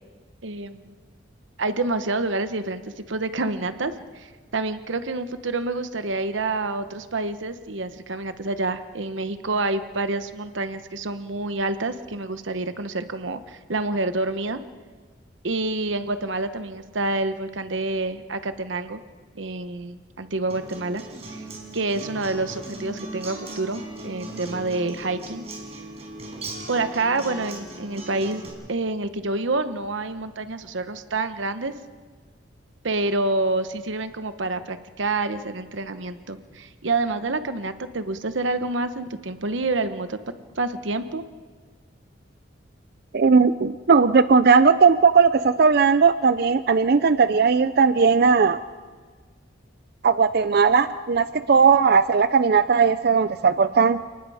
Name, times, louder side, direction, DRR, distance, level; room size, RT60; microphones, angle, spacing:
voice 1, 0.4-0.9 1.6-2.8 3.1-14.6 15.4-19.0 19.4-21.0 21.3-21.5 21.7-25.4 26.7-28.4 28.7-31.7 32.8-40.2 40.6-41.2, right 2 dB, 80° right, 10 dB, 1.0 m, -27 dB
Acoustic guitar, 20.5-28.5, right 2 dB, 35° right, 4.8 m, -38 dB
voice 2, 43.1-48.6 50.0-54.0, right 5 dB, 55° right, 13 dB, 0.5 m, -18 dB
29.5 x 19.0 x 4.9 m, 1.5 s
head